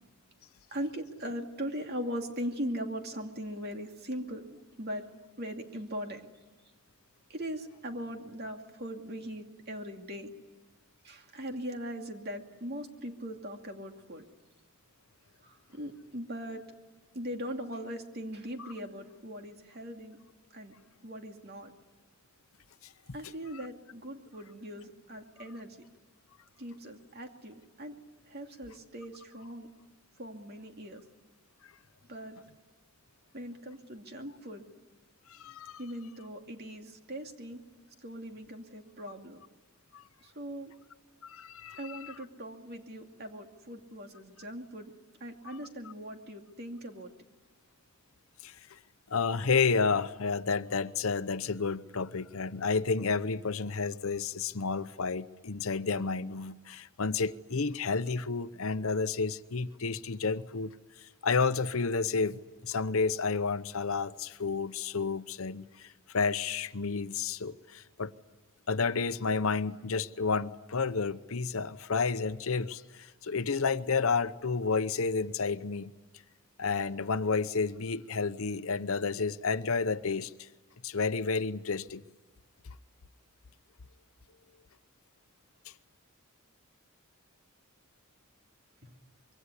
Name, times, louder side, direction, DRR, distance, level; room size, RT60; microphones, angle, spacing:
voice 1, 0.7-4.4 4.8-5.1 5.4-6.3 7.3-10.3 11.0-14.2 15.4-16.6 17.1-20.2 20.5-20.7 21.0-21.7 23.1-25.8 26.6-27.9 28.3-29.7 30.2-31.0 32.1-32.4 33.3-34.6 35.8-37.6 38.0-39.4 40.2-40.7 41.8-44.9 45.2-47.1 88.8-88.9, equal, 45° right, 2.5 m, -40 dB
voice 2, 35.3-35.8 39.9-40.0 41.2-42.1 45.5-45.6 48.4-48.8 49.1-60.7 61.0-68.1 68.7-75.9 76.6-80.5 80.8-82.0, left 4 dB, 70° left, 0.8 m, -31 dB
25.5 x 23.5 x 9.8 m
head